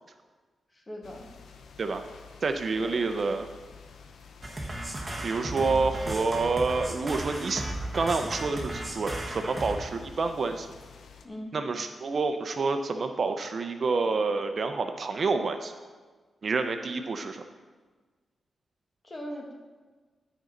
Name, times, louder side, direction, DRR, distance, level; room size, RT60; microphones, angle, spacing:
voice 1, 0.7-1.3 2.8-3.0 5.6-5.7 11.2-11.6 19.0-19.5, equal, 30° left, 0 dB, 1.6 m, -40 dB
sound 1, 1.0-11.3, left 6 dB, 80° left, 0.7 m, -50 dB
voice 2, 2.4-3.5 5.2-10.7 11.5-15.7 16.4-17.4, right 4 dB, 50° right, 7 dB, 0.6 m, -28 dB
sound 2, 4.4-9.8, right 1 dB, 20° right, 1.4 m, -35 dB
12.0 x 5.4 x 3.9 m, 1.4 s
cardioid pair, 90°, 0 cm